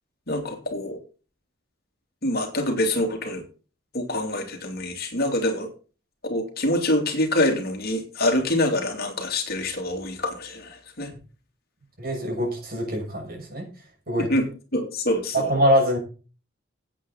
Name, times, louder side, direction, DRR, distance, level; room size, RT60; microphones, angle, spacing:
voice 1, 0.3-1.0 2.2-3.4 3.9-5.7 6.2-11.1 14.2-14.4 14.7-15.5, left 1 dB, 50° left, 4 dB, 2.9 m, -25 dB
voice 2, 12.0-13.7 14.1-14.3 15.3-16.0, equal, 50° right, 1 dB, 6.3 m, -23 dB
16.0 x 8.9 x 4.0 m, 0.36 s
head